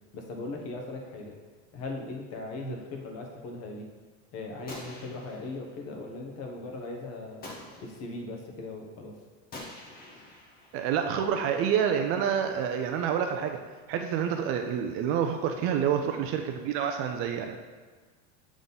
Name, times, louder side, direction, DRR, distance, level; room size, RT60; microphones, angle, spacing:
voice 1, 0.1-1.3 1.7-3.9 4.3-7.5 7.8-9.1 15.5-15.7, left 2 dB, 45° left, 1 dB, 1.1 m, -39 dB
Gunshot gunfire, 4.7-5.8 7.4-8.2 9.5-11.2, left 2 dB, 25° left, 1.0 m, -46 dB
voice 2, 10.7-13.6 13.9-17.6, right 8 dB, 40° right, 5 dB, 0.4 m, -28 dB
7.1 x 3.7 x 3.9 m, 1.5 s
supercardioid pair, 150°, 35 cm